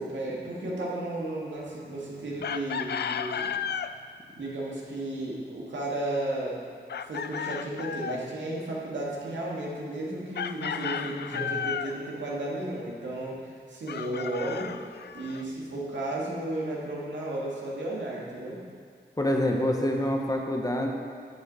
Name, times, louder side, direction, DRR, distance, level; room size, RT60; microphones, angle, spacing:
voice 1, 0.0-3.5 4.4-6.6 7.1-14.7 15.1-18.6, right 1 dB, 85° right, -4 dB, 2.3 m, -33 dB
Chicken rooster, 2.4-3.9 6.9-8.2 10.3-12.0 13.9-15.4, left 7 dB, 65° left, 0.4 m, -33 dB
voice 2, 19.2-20.9, left 1 dB, 20° left, 1 dB, 1.2 m, -26 dB
12.0 x 8.0 x 4.2 m, 2.1 s
cardioid pair, 70°, 18 cm